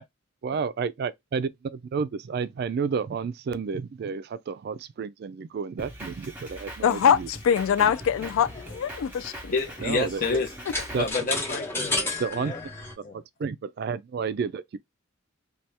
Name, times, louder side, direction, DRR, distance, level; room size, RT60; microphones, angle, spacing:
voice 1, 0.4-7.3 7.8-7.9 9.8-10.4 10.9-11.1 12.2-12.5 13.1-14.8, right 5 dB, 50° right, 0.3 m, -31 dB
Drum kit, 5.8-11.1, right 1 dB, 10° right, 1.0 m, -42 dB
voice 2, 6.8-9.5, left 8 dB, 80° left, 0.3 m, -23 dB
sound 1, 7.5-12.9, left 2 dB, 10° left, 0.8 m, -34 dB
voice 3, 9.5-10.5 11.0-12.6 13.0-13.2, left 4 dB, 45° left, 0.7 m, -29 dB
2.8 x 2.2 x 3.3 m
head